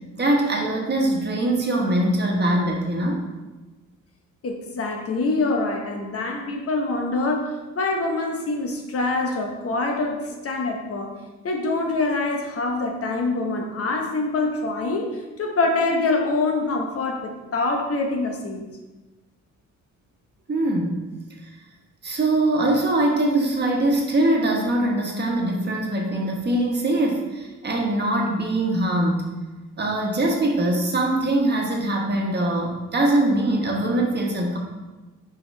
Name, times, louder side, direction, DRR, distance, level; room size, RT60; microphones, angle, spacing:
voice 1, 0.1-3.2 20.5-21.0 22.0-29.3 29.8-34.6, right 1 dB, 35° right, 0 dB, 1.3 m, -22 dB
voice 2, 4.4-11.1 11.4-18.6, left 3 dB, 50° left, 3 dB, 1.0 m, -25 dB
6.1 x 4.9 x 3.3 m, 1.2 s
cardioid pair, 90°, 30 cm